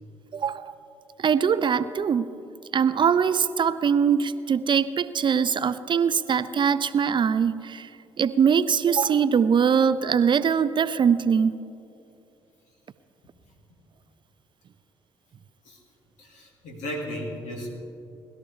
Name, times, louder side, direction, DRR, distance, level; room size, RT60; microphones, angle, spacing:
voice 1, 0.3-0.7 1.2-2.3 2.7-7.9 8.2-11.5, right 7 dB, 35° right, 15 dB, 0.5 m, -22 dB
voice 2, 16.2-17.7, equal, 65° left, -1 dB, 2.9 m, -35 dB
20.0 x 13.0 x 3.5 m, 2.8 s
figure-of-eight pair, 45°, 13 cm